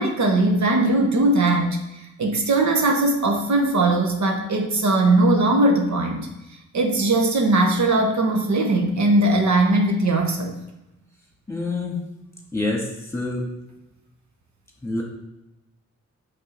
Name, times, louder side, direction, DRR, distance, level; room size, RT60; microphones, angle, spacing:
voice 1, 0.0-1.8 2.2-6.3 6.7-10.6, right 2 dB, 70° right, 2 dB, 0.9 m, -19 dB
voice 2, 11.5-12.0 12.5-12.9 13.1-13.4 14.8-15.0, left 2 dB, 10° left, -1 dB, 1.7 m, -26 dB
5.4 x 3.6 x 5.2 m, 0.94 s
cardioid pair, 75°, 30 cm